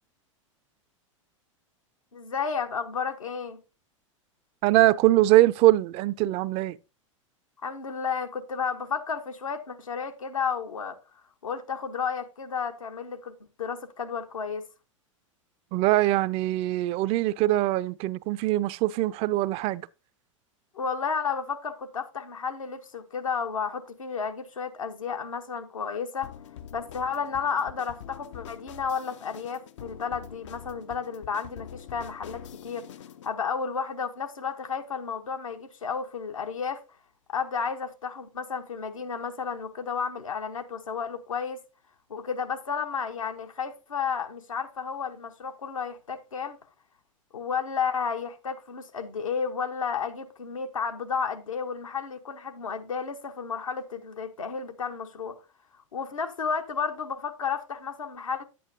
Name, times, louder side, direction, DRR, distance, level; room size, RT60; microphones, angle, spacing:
voice 1, 2.1-3.6 7.6-11.0 11.4-14.6 20.7-26.3 26.7-32.9 33.2-36.8 37.3-41.6 42.1-46.6 47.3-55.4 55.9-58.4, left 6 dB, 80° left, 1.1 m, -32 dB
voice 2, 4.6-6.8 15.7-19.9, right 16 dB, 35° right, 0.4 m, -22 dB
sound 1, 26.2-33.3, left 9 dB, 65° left, 0.6 m, -45 dB
10.0 x 8.5 x 2.7 m
figure-of-eight pair, 90°, 17 cm